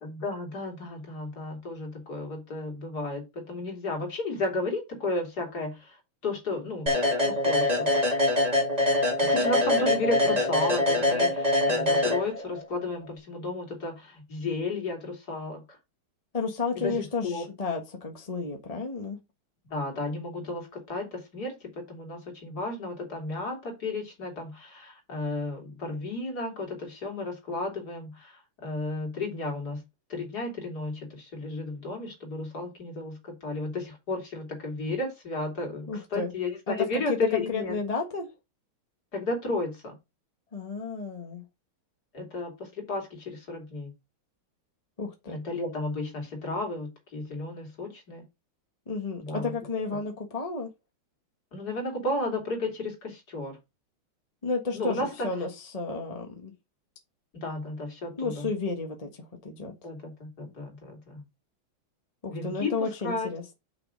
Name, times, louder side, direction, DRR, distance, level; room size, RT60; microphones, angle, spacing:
voice 1, 0.0-6.0 6.2-7.0 7.2-8.0 9.2-15.6 16.7-17.0 17.2-17.4 19.7-29.8 30.1-37.7 39.1-39.9 42.1-43.9 45.3-48.2 49.2-49.5 51.5-53.6 54.7-55.3 57.3-58.5 59.8-61.2 62.3-62.7 63.0-63.3, left 2 dB, 50° left, 3.3 m, -33 dB
sound 1, 6.9-12.7, left 1 dB, 20° right, 2.7 m, -24 dB
voice 2, 16.3-19.2 35.9-36.3 36.7-37.2 37.5-38.3 40.5-41.4 45.0-45.4 48.9-50.7 54.4-56.5 58.2-59.7 62.2-63.5, left 4 dB, 20° left, 1.2 m, -32 dB
6.1 x 5.7 x 5.0 m
omnidirectional pair, 2.3 m